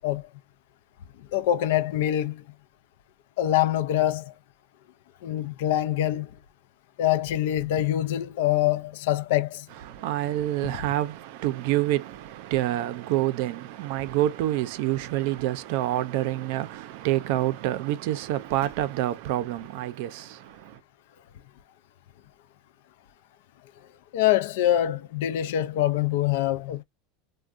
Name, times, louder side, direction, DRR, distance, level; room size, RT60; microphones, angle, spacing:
voice 1, 1.3-2.4 3.4-4.3 5.2-6.3 7.0-9.7 24.1-26.8, left 12 dB, 70° left, 0.4 m, -24 dB
voice 2, 9.9-20.8, right 14 dB, 60° right, 0.5 m, -27 dB
3.5 x 2.2 x 2.5 m
supercardioid pair, 160°, 0 cm